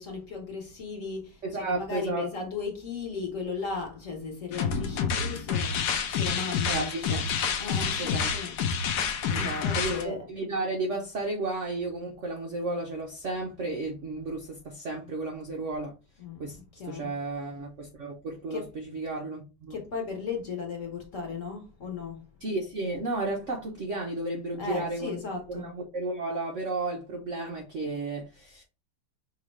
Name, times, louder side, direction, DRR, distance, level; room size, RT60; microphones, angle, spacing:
voice 1, 0.0-5.7 6.1-7.2 7.6-8.5 9.4-10.3 16.2-17.1 18.5-18.6 19.7-22.2 24.6-25.7, left 5 dB, 45° left, 1.3 m, -36 dB
voice 2, 1.4-2.3 6.7-7.2 8.0-8.4 9.3-15.9 16.4-19.8 22.4-25.2 25.5-28.6, right 2 dB, 90° right, 0.6 m, -33 dB
sound 1, 4.5-10.0, left 6 dB, 70° left, 1.0 m, -28 dB
5.4 x 2.9 x 3.1 m
omnidirectional pair, 2.3 m